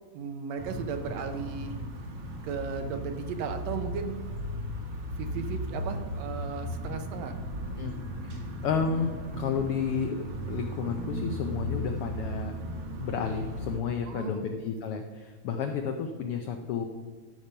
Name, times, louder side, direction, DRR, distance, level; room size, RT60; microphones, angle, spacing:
voice 1, 0.1-1.7 2.4-4.3 5.2-7.4 14.0-14.4, right 6 dB, 75° right, 7 dB, 1.8 m, -36 dB
sound 1, 0.6-13.8, equal, 50° right, 1.6 m, -36 dB
voice 2, 8.2-10.2 10.5-12.5 13.0-16.9, left 6 dB, 80° left, 5 dB, 1.2 m, -31 dB
13.5 x 5.2 x 5.5 m, 1.5 s
omnidirectional pair, 3.3 m